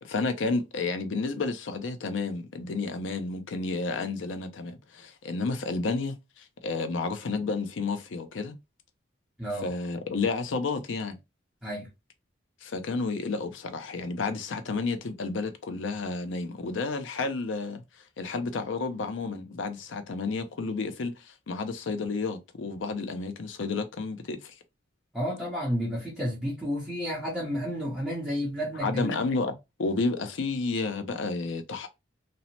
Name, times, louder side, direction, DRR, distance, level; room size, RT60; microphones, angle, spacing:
voice 1, 0.0-8.5 9.6-11.2 12.6-17.8 18.2-24.6 28.8-31.9, left 3 dB, 75° left, 0.5 m, -31 dB
voice 2, 9.4-9.7 11.6-11.9 25.1-29.2, equal, 5° right, 0.8 m, -31 dB
2.7 x 2.0 x 2.8 m
head